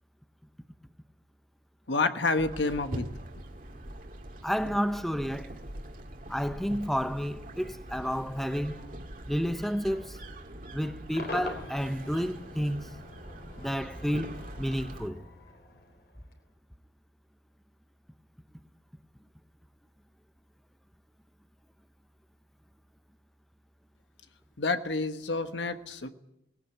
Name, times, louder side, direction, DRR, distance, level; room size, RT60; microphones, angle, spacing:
voice 1, 1.9-3.1 24.6-26.1, left 3 dB, 85° left, 1.4 m, -29 dB
sound 1, 2.4-15.1, right 1 dB, 50° right, 2.2 m, -43 dB
voice 2, 4.4-5.6 6.3-8.9 9.3-10.2 10.7-12.9 13.6-15.2, equal, ahead, 0.8 m, -31 dB
Cheering / Crowd / Fireworks, 11.2-16.4, left 1 dB, 60° left, 3.8 m, -44 dB
19.0 x 17.5 x 9.2 m
head